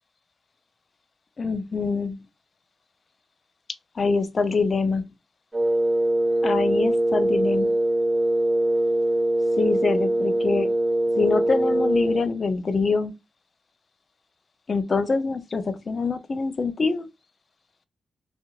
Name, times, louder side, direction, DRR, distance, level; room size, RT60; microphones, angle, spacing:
voice 1, 1.4-2.2 4.0-5.1 6.4-7.7 9.6-10.7 11.2-13.1 14.7-17.1, left 4 dB, 45° left, 0.5 m, -25 dB
Wind instrument woodwind instrument, 5.5-12.3, right 1 dB, 15° right, 1.1 m, -22 dB
2.9 x 2.4 x 2.4 m
cardioid pair, 70°, 0 cm